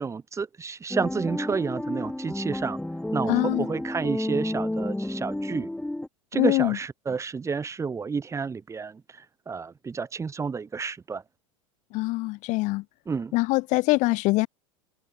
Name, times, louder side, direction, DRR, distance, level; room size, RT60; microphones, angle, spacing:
voice 1, 0.0-2.8 3.1-5.7 6.3-11.2 13.1-13.3, right 5 dB, 15° right, 1.2 m, -30 dB
sound 1, 0.9-6.1, left 1 dB, 5° left, 3.2 m, -31 dB
voice 2, 3.2-3.7 6.4-6.8 11.9-12.8 13.3-14.5, left 22 dB, 45° left, 0.8 m, -24 dB
hypercardioid pair, 85°, 17 cm